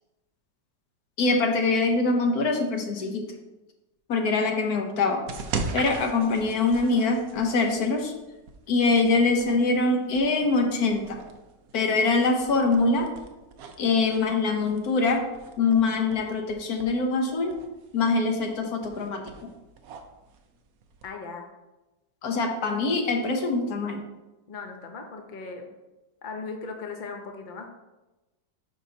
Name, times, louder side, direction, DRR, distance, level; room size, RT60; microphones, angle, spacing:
voice 1, 1.2-3.3 4.1-5.2 5.7-8.1 8.7-11.2 11.7-13.1 13.8-15.3 15.6-17.6 17.9-19.5 22.2-24.0, left 3 dB, 65° left, 3 dB, 1.3 m, -24 dB
sound 1, 5.3-21.1, right 5 dB, 65° right, 1.1 m, -40 dB
voice 2, 21.0-21.5 24.5-25.7 26.2-27.7, left 4 dB, 45° left, 3 dB, 0.6 m, -38 dB
9.4 x 5.7 x 2.8 m, 1.1 s
omnidirectional pair, 1.9 m